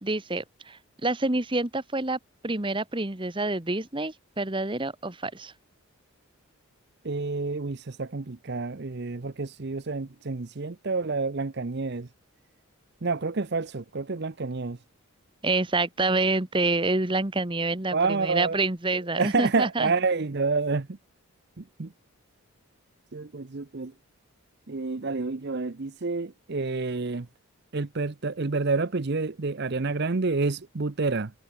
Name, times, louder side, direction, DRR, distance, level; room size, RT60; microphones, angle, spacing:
voice 1, 0.0-5.5 15.4-19.9, right 2 dB, 20° right, 1.3 m, -27 dB
voice 2, 7.0-12.1 13.0-14.8 17.9-18.6 19.1-21.0 21.6-21.9 23.1-23.9 24.7-27.3 27.7-31.3, right 3 dB, 50° right, 0.7 m, -28 dB
head